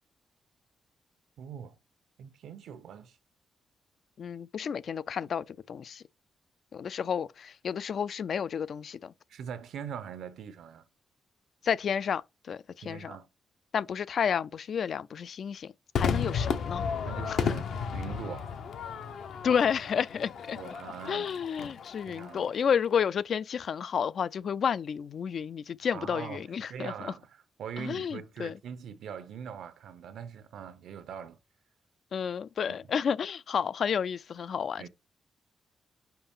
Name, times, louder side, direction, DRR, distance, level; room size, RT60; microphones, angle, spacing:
voice 1, 1.4-1.8 2.2-3.2 9.3-10.9 12.8-13.3 17.0-18.5 20.5-21.4 22.1-22.5 25.9-26.4 26.7-31.4 32.7-32.9 34.8-34.9, right 8 dB, 90° right, 1.0 m, -42 dB
voice 2, 4.2-6.0 6.7-9.1 11.6-13.1 13.7-16.9 17.3-17.5 19.4-20.6 21.1-26.9 27.8-28.5 32.1-34.9, left 7 dB, 55° left, 0.3 m, -31 dB
Crowd / Fireworks, 15.9-22.5, left 6 dB, 80° left, 1.0 m, -33 dB
5.8 x 5.3 x 5.5 m
wide cardioid pair, 145°, 0 cm